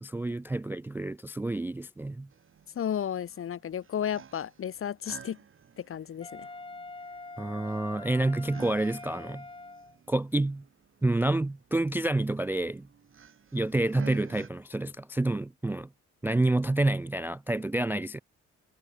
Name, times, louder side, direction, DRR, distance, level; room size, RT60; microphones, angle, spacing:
voice 1, 0.0-2.3 7.4-9.5 10.1-10.6 11.0-12.9 13.5-15.9 16.2-18.2, right 2 dB, 5° right, 0.3 m, -28 dB
sound 1, 2.3-14.5, right 7 dB, 45° right, 2.2 m, -51 dB
voice 2, 2.7-5.4 5.8-6.5, left 9 dB, 45° left, 0.9 m, -33 dB
Wind instrument woodwind instrument, 6.2-10.0, left 3 dB, 15° left, 2.4 m, -44 dB
cardioid pair, 90°, 30 cm